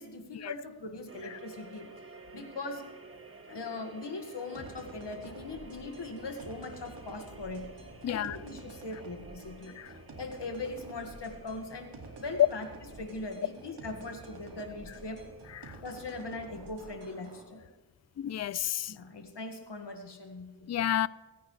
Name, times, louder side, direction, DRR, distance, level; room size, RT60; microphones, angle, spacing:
voice 1, 0.0-1.9 2.3-2.8 3.5-7.7 8.1-9.7 10.2-11.9 12.2-12.7 13.0-15.2 15.8-17.6 18.9-20.7, left 3 dB, 70° left, 2.0 m, -40 dB
sound 1, 1.1-15.7, right 3 dB, 30° right, 1.6 m, -53 dB
sound 2, 4.5-17.4, right 3 dB, 70° right, 2.4 m, -49 dB
voice 2, 8.0-8.4 9.8-9.9 12.4-12.5 15.5-15.8 18.2-19.0 20.7-21.1, left 11 dB, 40° left, 0.4 m, -29 dB
26.5 x 10.0 x 3.3 m
cardioid pair, 60°, 43 cm